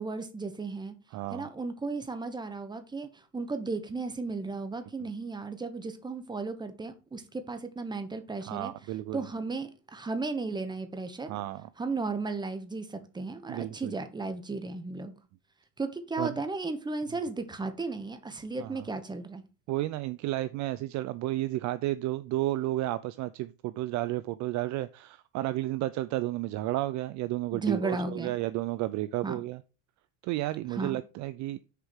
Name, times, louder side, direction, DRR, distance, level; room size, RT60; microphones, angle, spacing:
voice 1, 0.0-0.9 1.3-8.7 9.1-11.3 11.8-15.1 15.8-19.4 27.5-28.3 29.2-29.4 30.7-31.0, right 3 dB, 10° right, 1.1 m, -35 dB
voice 2, 1.1-1.5 8.4-9.2 11.3-11.7 13.5-13.9 16.2-16.4 18.6-18.8 19.7-29.6 30.2-31.6, right 16 dB, 45° right, 0.4 m, -32 dB
6.7 x 4.7 x 6.3 m
cardioid pair, 130°, 40 cm